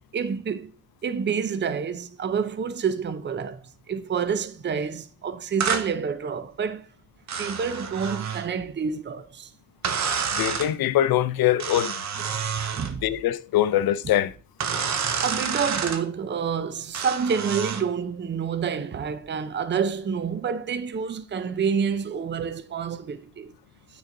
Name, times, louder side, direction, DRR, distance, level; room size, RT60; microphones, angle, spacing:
voice 1, 0.1-0.7 1.0-3.6 3.9-6.9 7.4-9.5 12.3-12.4 12.7-13.1 14.7-14.8 15.2-23.5, right 6 dB, 30° right, 0.6 m, -28 dB
sound 1, 5.6-5.9 7.3-8.5 9.8-10.7 11.6-12.9 14.6-16.0 16.9-17.9, right 6 dB, 50° right, 0.9 m, -28 dB
voice 2, 10.3-12.0 13.0-14.3, left 12 dB, 85° left, 0.6 m, -23 dB
9.3 x 4.9 x 3.8 m
cardioid pair, 125°, 35 cm